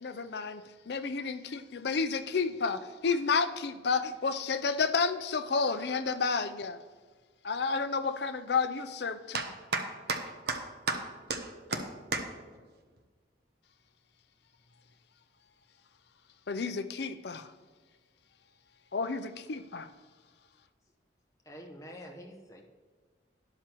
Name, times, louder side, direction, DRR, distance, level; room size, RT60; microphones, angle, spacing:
voice 1, 0.0-6.8 7.4-9.4 16.5-17.5 18.9-19.9, left 4 dB, 60° left, 10 dB, 0.5 m, -31 dB
voice 2, 9.3-11.0 11.3-11.8 12.1-12.2, right 3 dB, 55° right, 5 dB, 0.9 m, -34 dB
voice 3, 21.4-22.7, equal, 15° left, 0 dB, 1.0 m, -47 dB
12.0 x 10.5 x 3.0 m, 1.5 s
head